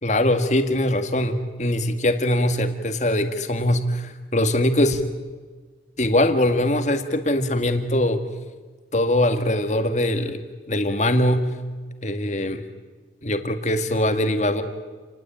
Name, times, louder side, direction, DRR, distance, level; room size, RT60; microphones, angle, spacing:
voice 1, 0.0-5.0 6.0-8.2 8.9-10.4 10.7-11.5 12.0-12.6 13.2-14.6, left 1 dB, 40° left, 8 dB, 2.0 m, -22 dB
29.0 x 19.5 x 8.9 m, 1.4 s
head